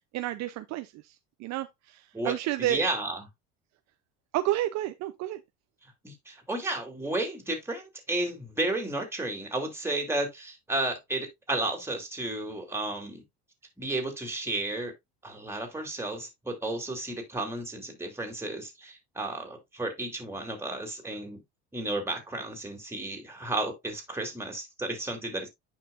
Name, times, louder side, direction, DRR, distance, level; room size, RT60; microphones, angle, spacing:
voice 1, 0.1-2.8 4.3-5.4, right 14 dB, 55° right, 0.7 m, -31 dB
voice 2, 2.6-3.2 6.0-13.2 13.8-14.9 15.2-21.4 21.7-25.5, right 2 dB, 10° right, 3.0 m, -33 dB
9.3 x 5.7 x 2.5 m
supercardioid pair, 105°, 33 cm